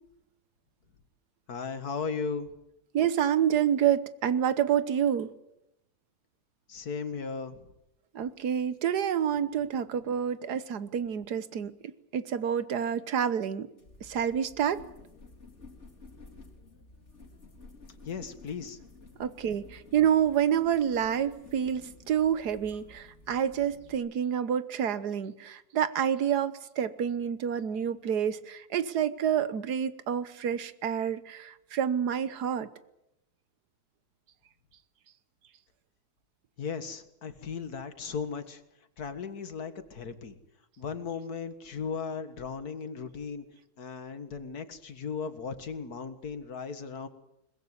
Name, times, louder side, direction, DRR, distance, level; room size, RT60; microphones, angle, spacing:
voice 1, 1.5-2.5 6.7-7.6 18.1-18.8 36.6-38.6 39.0-40.4 40.8-43.4 43.8-47.1, left 5 dB, 70° left, 10 dB, 2.2 m, -36 dB
voice 2, 2.9-5.3 8.1-13.7 14.0-14.8 19.2-32.7, right 9 dB, 85° right, 14 dB, 1.6 m, -28 dB
sound 1, 13.8-23.9, left 3 dB, 45° left, 4.2 m, -52 dB
22.5 x 21.0 x 8.1 m, 0.83 s
omnidirectional pair, 1.7 m